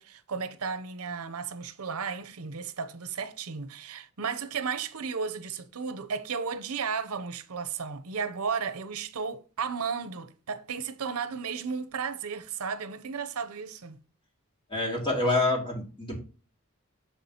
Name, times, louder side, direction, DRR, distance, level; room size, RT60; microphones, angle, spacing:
voice 1, 0.0-14.0, right 5 dB, 85° right, 0.8 m, -34 dB
voice 2, 14.7-16.2, left 2 dB, 20° left, 2.4 m, -27 dB
6.8 x 6.0 x 2.9 m
head